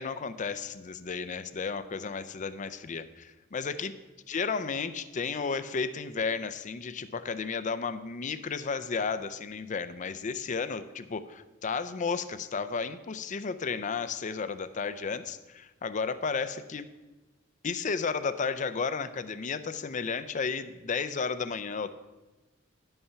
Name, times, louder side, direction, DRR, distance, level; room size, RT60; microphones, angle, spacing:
voice 1, 0.0-3.9 4.3-16.9 17.6-21.9, left 5 dB, 40° left, 13 dB, 0.5 m, -33 dB
11.0 x 5.5 x 5.7 m, 1.2 s
head